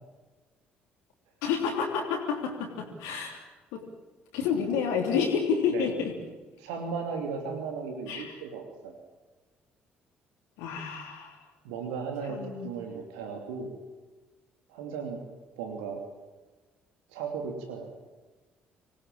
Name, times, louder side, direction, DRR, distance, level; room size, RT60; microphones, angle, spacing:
voice 1, 1.4-3.4 3.7-3.8 4.3-6.1 8.1-8.4 10.6-11.4 12.3-12.7, left 6 dB, 65° left, 2 dB, 3.2 m, -29 dB
voice 2, 6.6-9.0 11.6-13.7 14.7-15.2 15.6-16.0 17.1-17.9, right 5 dB, 70° right, 4 dB, 2.9 m, -36 dB
26.0 x 19.5 x 8.9 m, 1.2 s
figure-of-eight pair, 50°, 5 cm